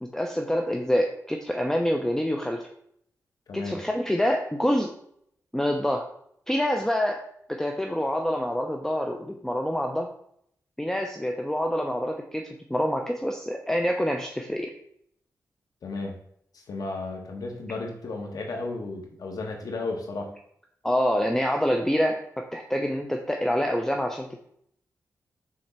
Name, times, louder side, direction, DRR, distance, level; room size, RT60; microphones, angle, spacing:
voice 1, 0.0-2.6 3.5-4.9 5.5-6.1 6.5-7.2 7.5-10.1 10.8-12.4 12.7-14.7 20.8-24.4, equal, 5° left, 3 dB, 0.7 m, -26 dB
voice 2, 15.8-16.1 16.5-20.3, left 3 dB, 75° left, 2 dB, 1.6 m, -34 dB
6.3 x 3.8 x 6.0 m, 0.69 s
cardioid pair, 85°, 6 cm